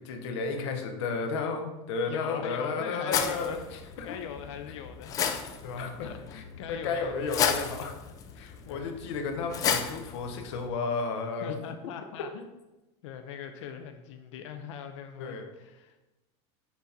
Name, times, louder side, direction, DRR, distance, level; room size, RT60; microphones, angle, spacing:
voice 1, 0.0-4.2 5.6-8.0 8.4-11.6 15.2-15.5, left 4 dB, 70° left, 5 dB, 1.0 m, -33 dB
voice 2, 2.1-3.6 4.0-5.3 5.7-7.4 8.6-9.0 11.4-12.5 13.0-16.1, left 8 dB, 85° left, 7 dB, 0.5 m, -41 dB
sound 1, 3.1-10.7, left 8 dB, 25° left, 0.4 m, -33 dB
6.2 x 4.0 x 4.2 m, 1.1 s
supercardioid pair, 170°, 15 cm